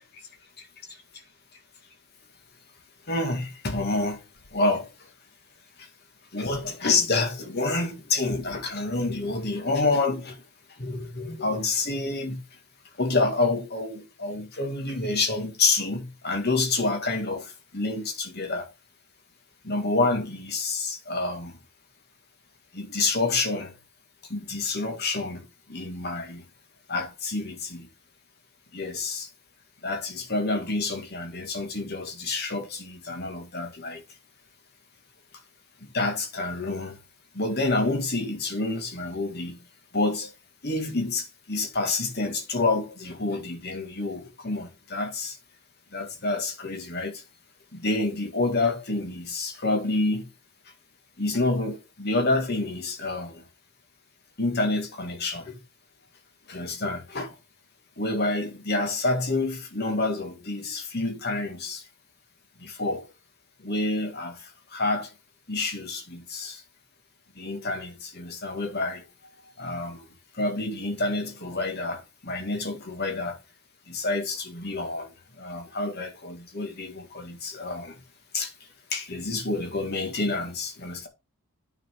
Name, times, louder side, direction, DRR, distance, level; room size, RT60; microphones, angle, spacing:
voice 1, 3.1-4.2 4.5-5.1 5.8-5.9 6.3-10.4 10.8-12.4 12.9-18.7 19.6-21.6 22.7-23.7 24.3-26.4 26.9-27.9 28.7-29.3 29.8-34.0 35.8-37.0 37.3-39.6 39.9-40.3 40.6-45.4 45.9-47.2 47.7-50.3 51.2-53.4 54.4-55.6 56.5-57.3 58.0-61.9 62.6-63.0 63.6-65.1 65.5-66.6 67.4-69.0 69.6-70.1 70.3-73.4 73.9-78.0 78.3-78.5 78.9-81.1, left 2 dB, 45° left, 1.9 m, -28 dB
9.1 x 5.1 x 3.7 m
head